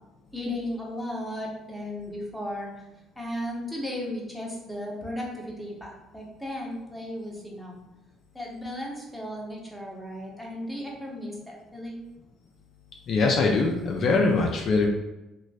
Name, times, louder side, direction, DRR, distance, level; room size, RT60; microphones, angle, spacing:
voice 1, 0.3-2.7 3.2-7.7 8.3-12.1, left 1 dB, ahead, -3 dB, 1.0 m, -35 dB
voice 2, 13.1-14.9, left 3 dB, 55° left, 0 dB, 0.4 m, -22 dB
3.0 x 2.5 x 2.4 m, 0.96 s
hypercardioid pair, 50°, 0 cm